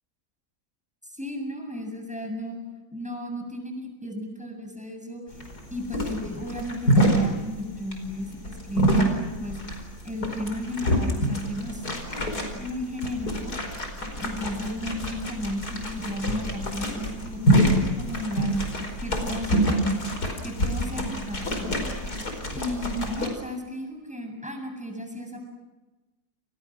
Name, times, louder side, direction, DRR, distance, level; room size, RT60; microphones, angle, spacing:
voice 1, 1.1-2.6 2.9-5.2 5.7-9.6 10.0-11.8 12.6-13.6 14.2-18.5 19.0-20.1 20.4-21.8 22.5-25.4, left 1 dB, 5° right, 3 dB, 7.3 m, -34 dB
sound 1, 5.3-23.3, equal, 70° left, 5.5 m, -26 dB
30.0 x 29.0 x 6.3 m, 1.1 s
omnidirectional pair, 1.7 m